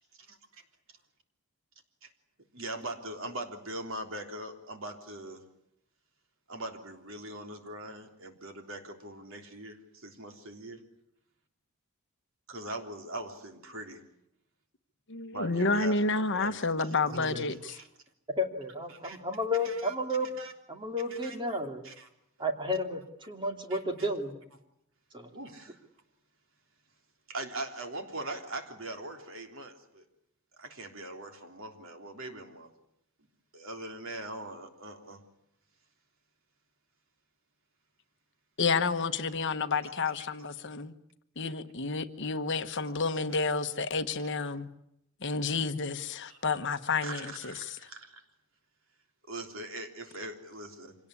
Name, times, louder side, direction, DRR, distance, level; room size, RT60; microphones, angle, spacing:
voice 1, 2.5-5.4 6.5-10.8 12.5-14.0 15.3-17.3 17.7-17.9 18.9-19.2 19.6-19.9 20.4-20.5 21.1-21.6 21.8-22.1 22.4-22.5 23.7-24.1 25.3-25.8 27.3-30.0 30.6-32.7 33.5-35.2 46.3-46.4 47.0-48.2 49.3-51.0, right 2 dB, 60° right, 5 dB, 3.5 m, -41 dB
voice 2, 15.1-17.8 38.6-40.9 41.4-44.7 45.2-47.8, left 4 dB, 55° left, 10 dB, 1.2 m, -30 dB
voice 3, 17.1-17.4 18.4-20.3 20.7-21.8 22.4-24.4 25.1-25.3, left 1 dB, 20° right, 4 dB, 2.7 m, -32 dB
26.0 x 18.5 x 9.8 m, 0.79 s
head